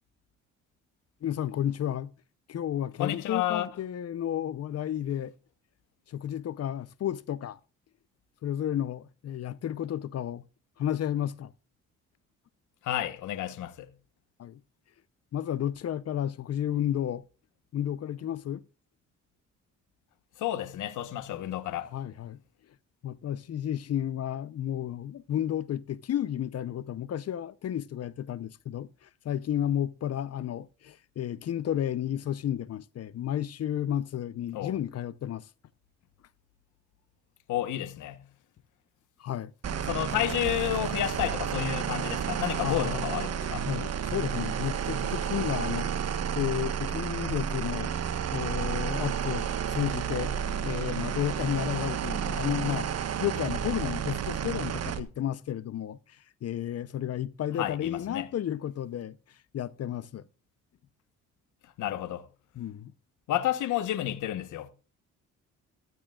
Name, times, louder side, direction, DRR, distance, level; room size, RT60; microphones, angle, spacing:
voice 1, 1.2-2.1 2.5-5.3 6.1-7.6 8.4-10.4 10.8-11.5 14.4-14.6 15.3-17.2 17.7-18.6 21.9-22.4 23.0-35.5 39.2-39.5 42.6-43.0 43.4-47.9 48.3-50.3 50.6-52.9 53.2-59.2 59.5-60.3 62.5-62.9, left 10 dB, 55° left, 0.8 m, -32 dB
voice 2, 3.0-3.7 12.8-13.9 20.4-21.9 34.5-34.7 37.5-38.2 39.9-43.7 57.6-58.3 61.8-62.3 63.3-64.7, left 13 dB, 80° left, 1.2 m, -31 dB
sound 1, 39.6-55.0, right 8 dB, 55° right, 1.4 m, -31 dB
15.0 x 13.5 x 2.4 m
cardioid pair, 90°, 30 cm